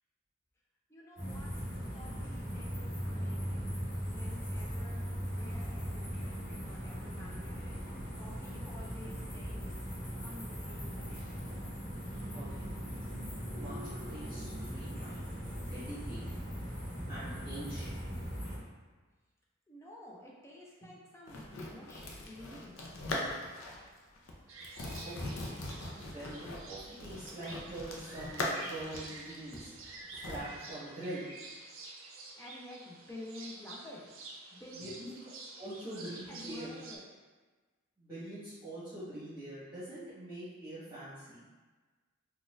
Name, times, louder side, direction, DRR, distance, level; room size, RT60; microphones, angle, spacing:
voice 1, 0.9-1.5 1.9-7.8 8.2-9.7 10.2-11.2 19.7-22.9 32.3-35.1 36.3-37.0, left 1 dB, 15° left, -3 dB, 0.4 m, -51 dB
sound 1, 1.2-18.6, equal, 40° left, 1.0 m, -39 dB
voice 2, 12.3-12.6 13.5-15.2 15.6-16.4 17.1-18.0 25.0-25.3 26.1-29.7 30.2-31.2 34.7-35.3 35.5-36.7 38.0-41.4, right 1 dB, 20° right, -15 dB, 1.1 m, -44 dB
sound 2, 21.3-23.9 24.2-24.3 24.6-30.4, left 1 dB, 70° left, 0.5 m, -40 dB
sound 3, 24.5-37.0, right 3 dB, 70° right, 0.5 m, -49 dB
4.0 x 2.3 x 2.4 m, 1.3 s
head